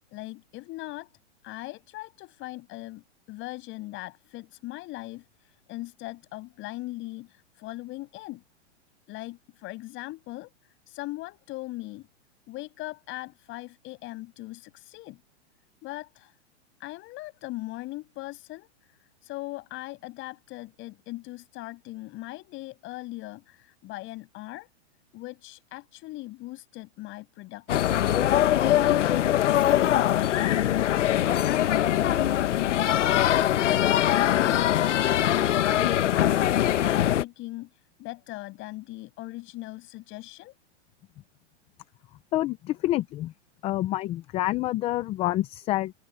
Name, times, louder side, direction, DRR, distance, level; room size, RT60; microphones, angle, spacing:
voice 1, 0.1-1.1 1.4-8.4 9.1-12.1 12.5-15.2 15.8-16.3 16.8-24.7 25.1-28.4 29.5-31.0 31.4-36.3 36.8-40.5, left 19 dB, 35° left, 7.9 m, -40 dB
sound 1, 27.7-37.2, left 12 dB, 75° left, 1.3 m, -22 dB
voice 2, 42.3-43.3 43.6-45.9, left 15 dB, 15° left, 0.5 m, -27 dB
open air
hypercardioid pair, 140°, 36 cm